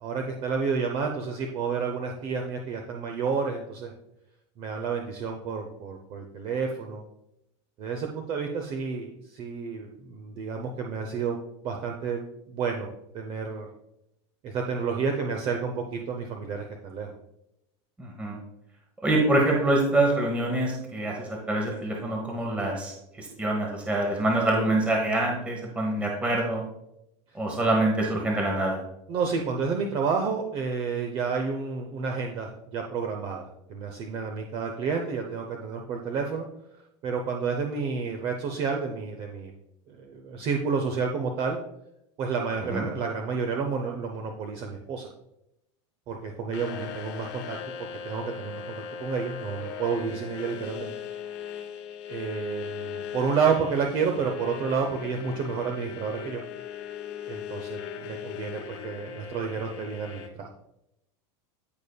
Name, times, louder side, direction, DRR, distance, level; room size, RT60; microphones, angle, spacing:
voice 1, 0.0-3.9 4.6-7.0 7.8-11.4 11.6-12.2 12.5-12.9 13.1-13.7 14.4-17.1 27.5-27.6 29.1-36.5 37.0-39.5 39.9-41.6 42.2-45.1 46.1-47.6 48.0-50.9 52.1-56.4 57.3-60.5, right 5 dB, 35° right, 3 dB, 0.7 m, -30 dB
voice 2, 18.0-18.4 19.0-26.6 27.3-28.8 42.7-42.8, right 2 dB, 10° right, -1 dB, 1.0 m, -25 dB
sound 1, 46.5-60.3, left 7 dB, 75° left, 1.6 m, -39 dB
15.0 x 5.2 x 2.3 m, 0.84 s
supercardioid pair, 160°, 15 cm